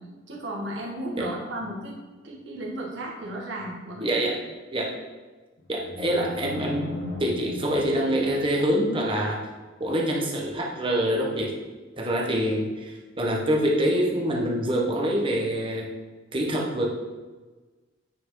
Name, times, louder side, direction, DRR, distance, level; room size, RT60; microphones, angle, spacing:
voice 1, 0.3-1.9 2.2-4.2, right 1 dB, 65° right, -3 dB, 1.8 m, -34 dB
voice 2, 4.0-4.4 4.7-4.9 5.7-6.8 7.2-9.4 9.8-11.5 12.0-15.9 16.3-16.9, equal, 25° right, -1 dB, 1.3 m, -25 dB
sound 1, 5.6-8.8, left 1 dB, 60° left, 1.5 m, -37 dB
9.0 x 5.5 x 3.9 m, 1.3 s
head